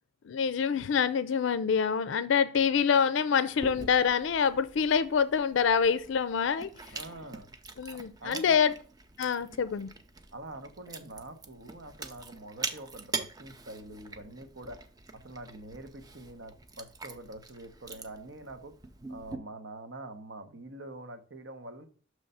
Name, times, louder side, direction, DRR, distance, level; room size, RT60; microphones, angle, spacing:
voice 1, 0.2-6.7 7.8-8.7 9.2-9.9, left 6 dB, 70° left, 14 dB, 0.4 m, -26 dB
Chewing mastication, 3.6-19.4, right 3 dB, 20° right, 0.5 m, -44 dB
voice 2, 6.9-7.5 7.9-8.6 10.3-14.8 15.2-18.7 19.1-21.9, right 2 dB, 65° right, 8 dB, 0.9 m, -45 dB
6.5 x 3.2 x 5.5 m, 0.41 s
head